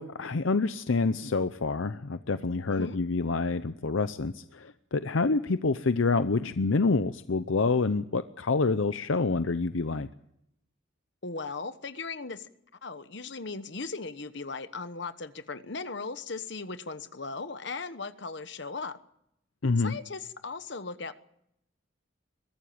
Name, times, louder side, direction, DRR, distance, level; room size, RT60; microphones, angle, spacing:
voice 1, 0.0-10.1 19.6-20.0, left 3 dB, 75° left, 12 dB, 0.7 m, -27 dB
voice 2, 11.2-12.5 12.8-19.0 19.8-21.1, left 4 dB, 60° left, 12 dB, 1.1 m, -37 dB
22.0 x 14.5 x 8.8 m, 0.78 s
head